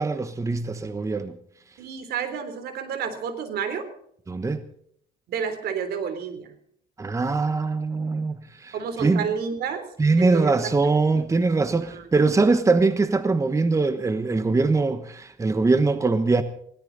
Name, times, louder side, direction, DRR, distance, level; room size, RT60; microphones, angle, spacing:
voice 1, 0.0-1.4 4.3-4.6 7.0-9.2 10.0-16.4, right 3 dB, 20° right, 1.1 m, -22 dB
voice 2, 1.8-3.9 5.3-6.5 8.7-9.8 10.2-11.0 11.8-12.1, right 7 dB, 70° right, 3.4 m, -30 dB
20.5 x 17.5 x 4.0 m
cardioid pair, 110°, 17 cm